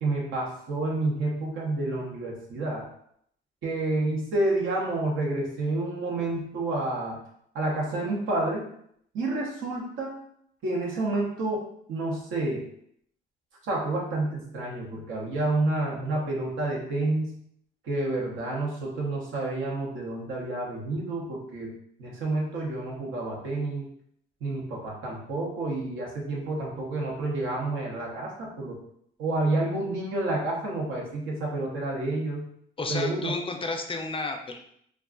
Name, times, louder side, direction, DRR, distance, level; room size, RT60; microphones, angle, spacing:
voice 1, 0.0-2.8 3.6-7.2 7.5-8.7 9.1-10.1 10.6-11.6 11.9-12.6 13.7-17.4 17.8-21.7 22.0-23.9 24.4-28.8 29.2-32.4 32.9-33.3, right 2 dB, 85° right, -2 dB, 0.9 m, -29 dB
voice 2, 32.8-34.6, left 3 dB, 25° left, 4 dB, 0.4 m, -32 dB
2.4 x 2.2 x 3.7 m, 0.69 s
cardioid pair, 90°, 20 cm